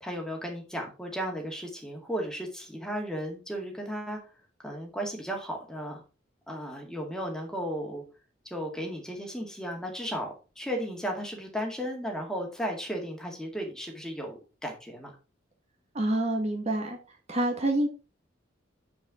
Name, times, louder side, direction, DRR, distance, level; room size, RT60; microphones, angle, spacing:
voice 1, 0.0-4.2 4.6-6.0 6.5-8.0 8.5-15.1, equal, 5° left, 1 dB, 2.0 m, -35 dB
voice 2, 15.9-17.0 17.3-17.9, right 1 dB, 35° right, 2 dB, 1.4 m, -27 dB
9.2 x 4.7 x 4.9 m, 0.33 s
head